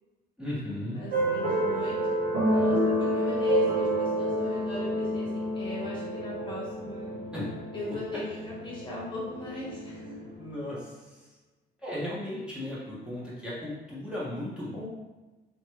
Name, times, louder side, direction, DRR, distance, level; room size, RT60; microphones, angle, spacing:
voice 1, 0.4-1.0 7.3-7.5 10.4-10.8 11.8-14.9, left 1 dB, 5° right, -9 dB, 1.3 m, -35 dB
voice 2, 0.9-2.0 2.4-7.1 7.7-10.1, left 3 dB, 30° left, -6 dB, 1.2 m, -36 dB
sound 1, 1.1-10.3, right 1 dB, 65° right, 1.0 m, -29 dB
3.1 x 3.1 x 3.1 m, 1.1 s
cardioid pair, 110°, 17 cm